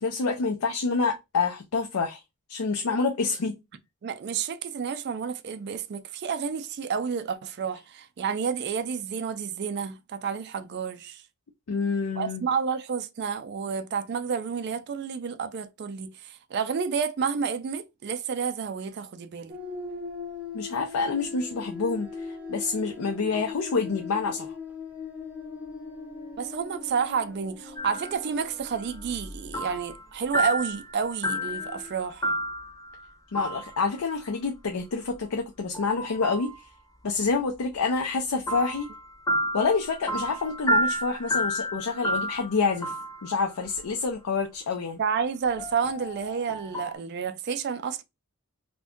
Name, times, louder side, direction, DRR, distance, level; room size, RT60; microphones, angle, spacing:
voice 1, 0.0-2.2 2.5-3.6 11.7-12.5 20.5-24.5 33.3-36.5 37.0-38.9 39.5-42.9 43.2-45.0, left 4 dB, 85° left, 0.5 m, -27 dB
voice 2, 4.0-11.2 12.2-19.6 26.4-32.3 45.0-48.0, right 6 dB, 50° right, 0.4 m, -30 dB
sound 1, 19.5-29.8 31.3-31.9, left 4 dB, 10° right, 0.7 m, -40 dB
sound 2, 27.8-28.2 28.7-30.0 30.3-33.0 33.3-33.9 35.7-36.6 38.5-43.8 45.6-46.9, equal, 15° left, 0.4 m, -31 dB
2.5 x 2.2 x 3.5 m
head